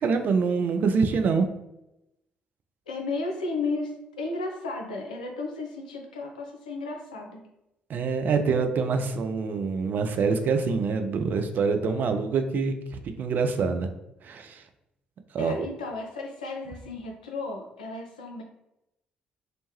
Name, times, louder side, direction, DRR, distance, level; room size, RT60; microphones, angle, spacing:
voice 1, 0.0-1.5 7.9-13.9 14.2-14.6 15.3-15.7, right 5 dB, 45° right, 7 dB, 0.3 m, -25 dB
voice 2, 2.9-7.4 15.4-18.4, left 3 dB, 80° left, 1 dB, 0.4 m, -34 dB
3.0 x 2.1 x 3.0 m, 0.88 s
figure-of-eight pair, 45°, 4 cm